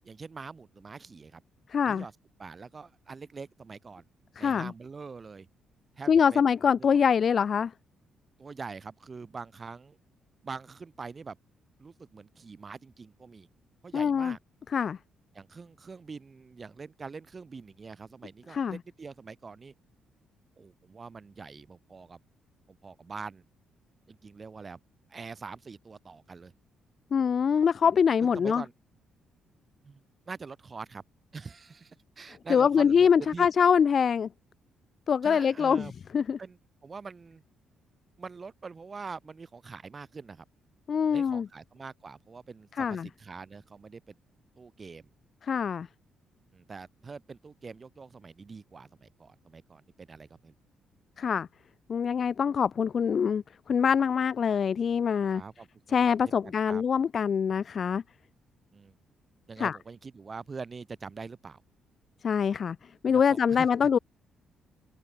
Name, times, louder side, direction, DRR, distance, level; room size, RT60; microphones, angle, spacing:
voice 1, 0.0-1.4 1.8-2.1 2.4-4.0 4.4-5.5 5.9-7.0 8.4-10.0 10.4-11.4 11.8-13.5 13.8-14.4 15.3-19.7 20.6-22.2 22.7-23.4 24.1-24.8 25.1-26.5 27.8-28.7 29.8-31.0 31.3-33.5 35.2-35.9 36.4-37.4 38.2-40.5 41.1-44.2 44.6-45.1 46.5-50.5 55.3-55.7 56.0-56.8 58.7-58.9 59.5-61.6 63.1-64.0, right 4 dB, 35° right, 2.2 m, -44 dB
voice 2, 1.7-2.0 4.4-4.7 6.1-7.7 13.9-14.4 14.7-15.0 18.5-18.8 27.1-28.6 32.5-34.3 35.1-35.9 36.1-36.4 40.9-41.5 42.8-43.1 45.5-45.9 51.2-51.5 51.9-55.4 55.9-58.0 59.6-59.8 62.2-62.8 63.0-64.0, left 7 dB, 50° left, 0.3 m, -24 dB
cardioid pair, 90°, 0 cm